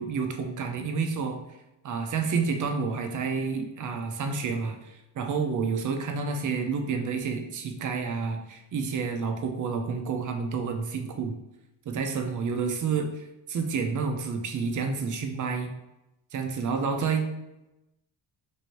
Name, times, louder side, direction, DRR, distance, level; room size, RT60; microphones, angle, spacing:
voice 1, 0.0-1.4 1.8-11.4 11.9-13.1 13.5-15.7 16.3-17.2, right 5 dB, 40° right, 5 dB, 0.6 m, -29 dB
3.0 x 2.6 x 3.0 m, 0.94 s
cardioid pair, 80°, 49 cm